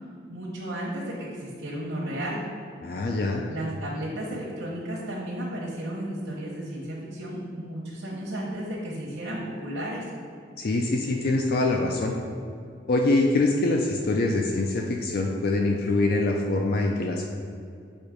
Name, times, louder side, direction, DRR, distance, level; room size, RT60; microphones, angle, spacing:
voice 1, 0.3-2.4 3.5-10.0, right 1 dB, 85° right, -4 dB, 1.0 m, -33 dB
voice 2, 2.8-3.4 10.6-12.1 12.9-17.2, left 2 dB, 50° left, 1 dB, 0.4 m, -24 dB
6.3 x 3.0 x 5.0 m, 2.3 s
head